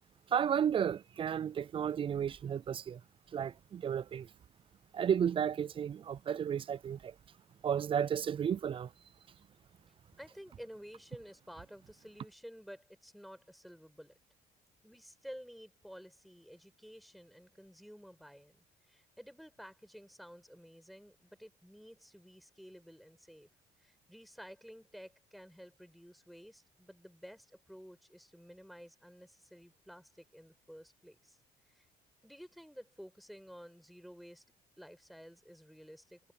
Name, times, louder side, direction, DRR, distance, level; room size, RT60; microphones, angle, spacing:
voice 1, 0.3-3.0 3.3-4.3 4.9-7.1 7.6-8.9, right 8 dB, 30° right, 0.4 m, -33 dB
voice 2, 10.2-14.1 14.8-23.5 23.8-31.4 31.7-31.9 32.2-34.4 34.8-36.3, equal, ahead, 6.9 m, -52 dB
cardioid pair, 110°, 17 cm